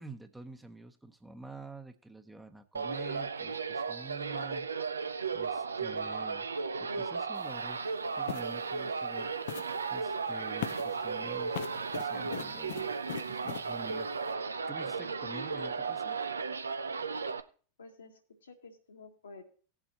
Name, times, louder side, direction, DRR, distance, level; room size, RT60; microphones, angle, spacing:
voice 1, 0.0-4.7 5.3-6.5 6.8-7.8 8.2-12.9 13.3-16.2, right 3 dB, 5° right, 7 dB, 1.0 m, -48 dB
sound 1, 2.7-17.4, right 5 dB, 85° right, 0.5 m, -35 dB
sound 2, 7.4-7.5 8.3-8.6 9.5-9.9 10.6-11.0 11.5-13.7, left 14 dB, 60° left, 0.5 m, -41 dB
voice 2, 17.8-19.4, left 3 dB, 80° left, 1 dB, 2.0 m, -51 dB
17.5 x 7.2 x 2.9 m, 0.40 s
figure-of-eight pair, 90°, 0 cm